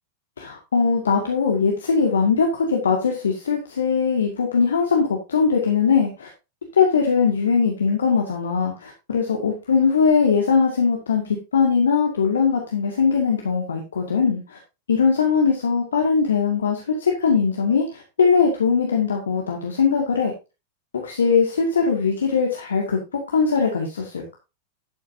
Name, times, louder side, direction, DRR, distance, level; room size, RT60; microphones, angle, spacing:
voice 1, 0.4-6.3 6.7-14.6 14.9-20.3 20.9-24.3, left 5 dB, 70° left, 1 dB, 2.1 m, -21 dB
12.5 x 8.4 x 2.8 m, 0.28 s
figure-of-eight pair, 90°, 0 cm